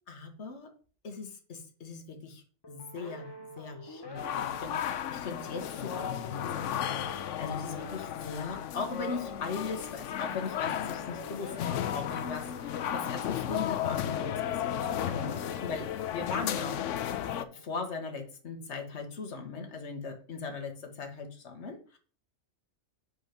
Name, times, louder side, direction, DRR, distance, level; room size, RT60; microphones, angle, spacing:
voice 1, 0.1-0.7 1.0-16.8 17.3-22.0, left 4 dB, 65° left, 4 dB, 1.6 m, -39 dB
sound 1, 2.6-18.0, equal, 20° left, 0.9 m, -48 dB
sound 2, 4.1-17.4, left 10 dB, 85° left, 1.0 m, -34 dB
6.3 x 5.2 x 5.8 m, 0.39 s
omnidirectional pair, 1.3 m